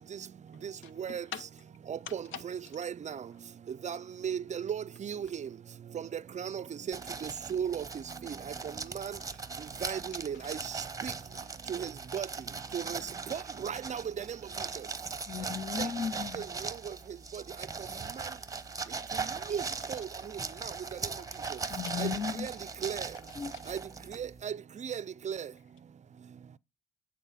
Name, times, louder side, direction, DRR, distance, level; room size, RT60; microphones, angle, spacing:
voice 1, 0.5-1.5 2.1-2.4 10.3-10.5 20.5-20.6 21.2-21.9 23.1-23.7, left 8 dB, 85° left, 0.9 m, -46 dB
voice 2, 1.9-3.2 3.8-4.0 4.2-5.3 6.4-7.0 7.2-7.8 8.2-8.3 9.0-9.1 9.8-10.6 11.0-11.1 11.7-12.3 12.7-13.0 13.3-14.0 19.5-19.6 19.9-20.1 22.0-22.1 22.4-22.5 22.8-23.0 23.7-23.8 24.2-24.5 24.8-25.5, right 8 dB, 35° right, 0.4 m, -35 dB
sound 1, 6.9-24.4, right 4 dB, 15° right, 0.8 m, -39 dB
voice 3, 15.3-16.5 21.7-22.5 23.4-23.5, left 7 dB, 25° left, 0.4 m, -35 dB
9.3 x 4.2 x 5.6 m
cardioid pair, 90°, 20 cm